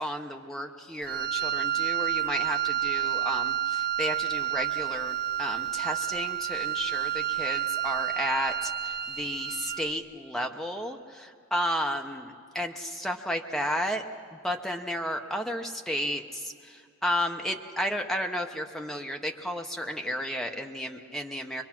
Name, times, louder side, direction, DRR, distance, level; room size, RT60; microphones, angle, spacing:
voice 1, 0.0-14.0 14.3-21.6, equal, ahead, 3 dB, 0.8 m, -33 dB
Wind instrument woodwind instrument, 1.0-9.9, right 11 dB, 45° right, 0.7 m, -30 dB
23.5 x 22.5 x 6.0 m, 2.4 s
head